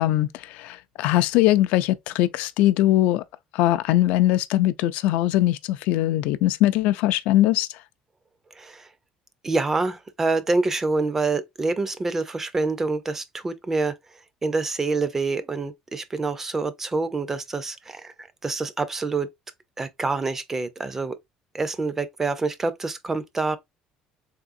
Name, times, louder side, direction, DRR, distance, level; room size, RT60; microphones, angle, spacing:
voice 1, 0.0-3.2 3.5-7.7, left 15 dB, 75° left, 0.3 m, -21 dB
voice 2, 8.6-8.9 9.4-13.9 14.4-19.3 19.8-21.2 21.5-23.6, right 3 dB, 15° right, 0.4 m, -26 dB
3.6 x 3.3 x 2.5 m
cardioid pair, 165°, 2 cm